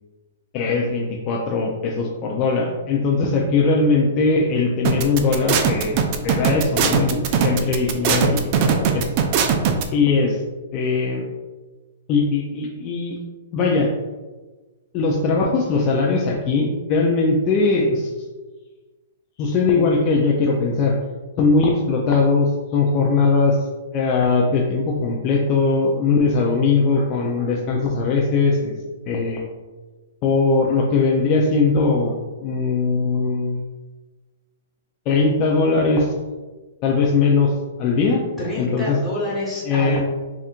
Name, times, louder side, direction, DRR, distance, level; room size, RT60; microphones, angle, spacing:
voice 1, 0.5-9.1 9.9-10.4 10.7-11.2 12.1-13.2 13.5-13.9 14.9-18.1 19.4-21.0 21.4-23.6 23.9-28.7 29.1-29.4 30.2-32.1 32.4-33.6 35.1-36.1 36.8-37.5 37.8-38.2 38.6-39.0 39.7-40.0, left 4 dB, 35° left, -1 dB, 0.4 m, -20 dB
sound 1, 4.8-9.8, right 7 dB, 40° right, 0.4 m, -19 dB
voice 2, 38.4-40.0, left 1 dB, 5° left, -8 dB, 1.2 m, -27 dB
4.3 x 2.4 x 2.5 m, 1.2 s
hypercardioid pair, 140°, 0 cm